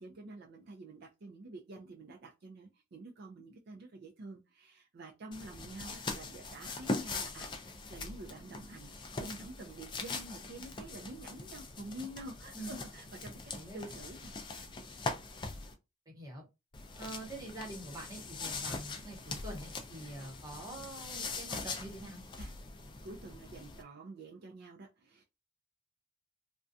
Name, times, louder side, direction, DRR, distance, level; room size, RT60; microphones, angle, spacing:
voice 1, 0.0-14.3 14.6-14.8 22.4-22.5 23.0-25.2, right 2 dB, 50° right, 1 dB, 0.4 m, -48 dB
sound 1, 5.3-15.7 16.7-23.8, left 3 dB, 20° left, 0.3 m, -42 dB
voice 2, 16.1-16.5 17.0-22.2, right 1 dB, 15° right, -1 dB, 0.8 m, -45 dB
2.4 x 2.2 x 2.6 m, 0.25 s
head